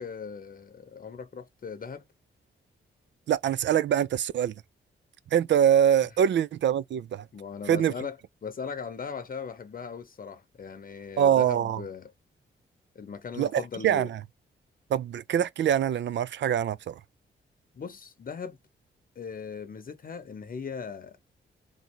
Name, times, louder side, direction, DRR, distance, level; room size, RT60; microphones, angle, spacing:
voice 1, 0.0-2.1 7.3-8.2 8.4-12.1 12.9-14.1 17.7-18.6 19.2-21.2, left 6 dB, 45° left, 0.8 m, -38 dB
voice 2, 3.3-4.5 5.3-7.3 7.7-7.9 11.2-11.8 13.4-14.2 14.9-17.0, right 9 dB, 65° right, 0.4 m, -24 dB
3.9 x 3.1 x 4.4 m
wide cardioid pair, 120°, 20 cm